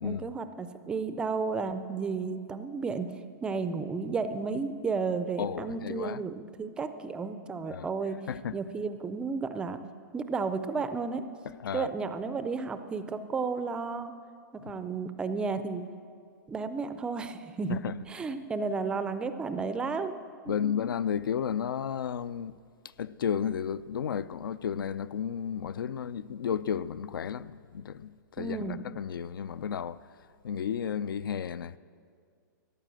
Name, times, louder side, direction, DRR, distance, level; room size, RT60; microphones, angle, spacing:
voice 1, 0.0-3.1 3.4-8.2 8.5-9.8 10.1-11.3 11.7-14.2 14.5-15.9 16.5-20.2 20.5-20.7 28.4-28.8, right 4 dB, 10° right, 0.4 m, -33 dB
voice 2, 5.4-6.2 7.7-7.9 8.3-8.5 11.6-11.9 17.7-17.9 20.5-22.6 23.0-30.0 30.4-31.8, left 8 dB, 90° left, 0.5 m, -33 dB
14.0 x 10.0 x 7.6 m
hypercardioid pair, 160°, 11 cm